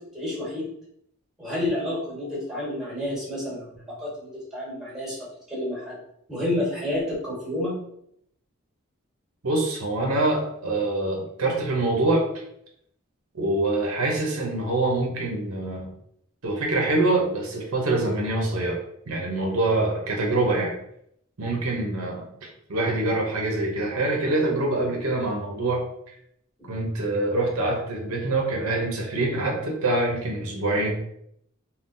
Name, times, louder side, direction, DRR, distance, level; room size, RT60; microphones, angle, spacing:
voice 1, 0.1-0.7 1.4-5.9 6.3-7.8 26.6-26.7, left 1 dB, ahead, -7 dB, 1.3 m, -30 dB
voice 2, 9.4-12.2 13.3-15.9 16.4-18.8 19.1-20.7 21.4-25.8 26.7-30.9, right 2 dB, 75° right, 0 dB, 0.7 m, -25 dB
3.6 x 2.2 x 2.6 m, 0.72 s
head